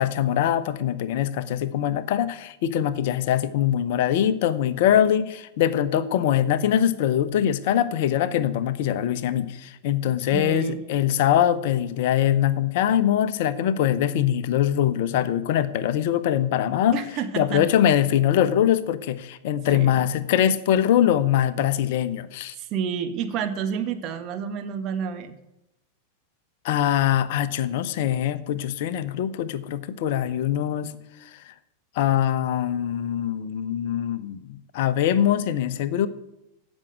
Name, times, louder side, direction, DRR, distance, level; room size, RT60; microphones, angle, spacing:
voice 1, 0.0-17.0 17.4-22.5 26.6-30.9 31.5-31.6 32.0-36.1, left 10 dB, 50° left, 15 dB, 0.9 m, -23 dB
voice 2, 10.3-10.8 16.9-17.6 19.7-20.0 22.6-25.3, right 7 dB, 35° right, 7 dB, 1.8 m, -29 dB
16.5 x 6.4 x 9.5 m, 0.90 s
figure-of-eight pair, 90°, 0 cm